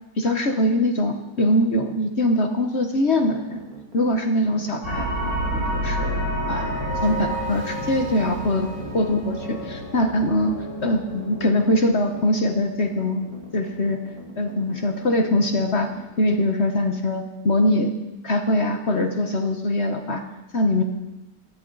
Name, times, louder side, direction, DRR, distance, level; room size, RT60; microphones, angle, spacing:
voice 1, 0.2-3.6 3.9-5.1 5.5-8.7 8.9-13.3 13.5-14.0 14.4-17.9 18.2-20.2 20.5-20.8, left 1 dB, 45° left, 5 dB, 1.1 m, -22 dB
sound 1, 3.1-16.5, right 2 dB, 50° right, 2.6 m, -43 dB
sound 2, 4.8-12.9, right 1 dB, 80° right, 5.1 m, -30 dB
18.0 x 14.0 x 4.0 m, 1.0 s
omnidirectional pair, 1.9 m